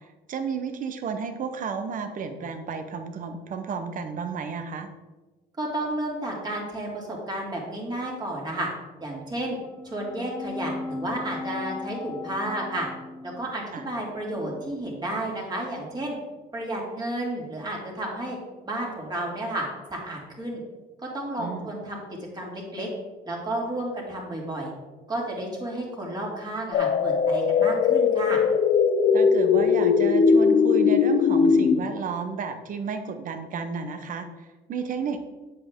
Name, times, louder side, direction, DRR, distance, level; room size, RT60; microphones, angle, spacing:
voice 1, 0.0-4.9 13.7-13.9 21.4-21.7 29.1-35.2, right 5 dB, 50° right, 8 dB, 1.0 m, -32 dB
voice 2, 5.6-8.7 9.0-9.6 9.9-12.9 13.2-16.2 16.5-18.4 18.6-20.6 21.1-22.0 22.3-22.9 23.3-24.7 25.1-28.4, right 1 dB, 25° right, -2 dB, 2.6 m, -32 dB
sound 1, 9.6-14.7, left 3 dB, 20° left, 0.9 m, -38 dB
sound 2, 26.7-31.8, left 6 dB, 55° left, 0.7 m, -20 dB
7.9 x 7.7 x 3.7 m, 1.2 s
cardioid pair, 110°, 17 cm